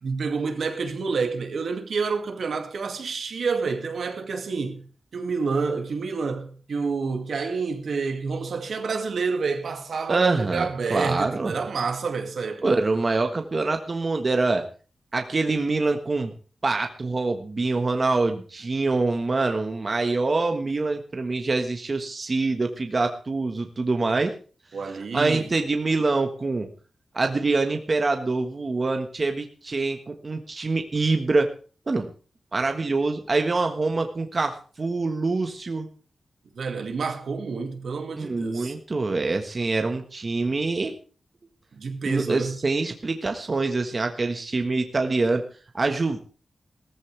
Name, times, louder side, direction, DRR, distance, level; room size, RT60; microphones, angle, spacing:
voice 1, 0.0-12.6 24.7-25.5 36.6-38.7 41.7-42.6, right 4 dB, 70° right, 2.2 m, -28 dB
voice 2, 10.1-11.5 12.6-14.6 15.1-16.3 16.6-24.3 24.8-26.7 27.1-31.5 31.9-32.1 32.5-35.9 38.2-40.9 42.0-45.4 45.7-46.2, right 3 dB, 35° right, 1.4 m, -25 dB
18.5 x 14.0 x 3.4 m
wide cardioid pair, 165°, 0 cm